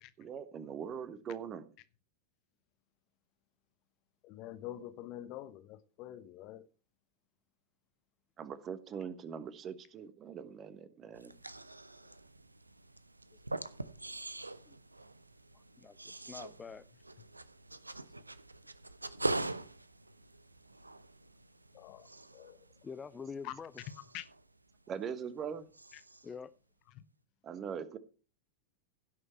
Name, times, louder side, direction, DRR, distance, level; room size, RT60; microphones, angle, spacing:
voice 1, 0.2-1.7 8.4-11.3 24.9-25.7 27.4-28.0, right 7 dB, 30° right, 1.2 m, -41 dB
voice 2, 4.2-6.7 21.7-22.1 22.3-22.6 23.4-23.5 24.1-24.3 25.9-26.0 26.9-27.0, left 13 dB, 40° left, 1.1 m, -46 dB
sound 1, 11.1-25.5 25.7-26.4, right 2 dB, 85° right, 0.6 m, -43 dB
voice 3, 15.5-16.9 22.8-23.7 26.2-26.5, left 5 dB, 15° left, 0.5 m, -46 dB
16.5 x 6.6 x 4.4 m
figure-of-eight pair, 90°, 0 cm